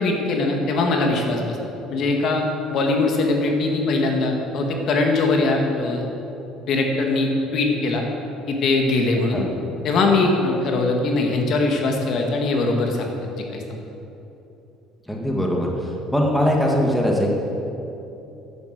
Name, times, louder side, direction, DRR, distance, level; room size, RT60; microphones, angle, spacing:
voice 1, 0.0-1.6 1.9-2.4 2.7-6.0 6.7-8.0 8.5-9.4 9.8-13.1 13.5-13.8, left 3 dB, 55° left, 2 dB, 1.7 m, -21 dB
voice 2, 15.1-15.7 16.1-17.3, equal, 5° left, -1 dB, 1.7 m, -20 dB
10.5 x 8.2 x 8.0 m, 2.9 s
cardioid pair, 125°, 0 cm